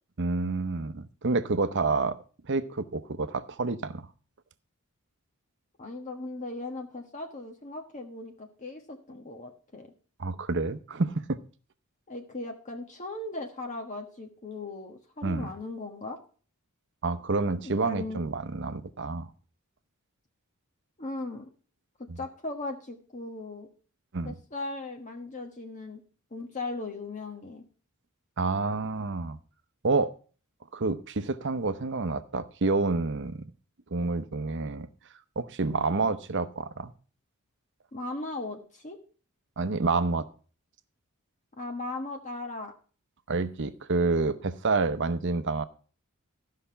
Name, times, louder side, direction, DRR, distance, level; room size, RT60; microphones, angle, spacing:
voice 1, 0.2-2.2 2.4-4.0 10.2-11.4 15.2-15.5 17.0-19.3 22.1-22.2 24.1-24.3 28.4-29.4 29.8-30.1 30.7-33.4 33.9-34.9 35.4-36.9 39.6-40.3 43.3-45.6, right 3 dB, 55° right, 12 dB, 0.8 m, -28 dB
voice 2, 5.8-9.9 12.1-16.2 17.6-18.3 21.0-21.5 22.2-23.7 24.2-26.0 26.3-27.6 37.9-39.0 41.6-42.7, left 2 dB, 35° left, 3 dB, 1.3 m, -38 dB
14.0 x 5.7 x 5.6 m, 0.39 s
head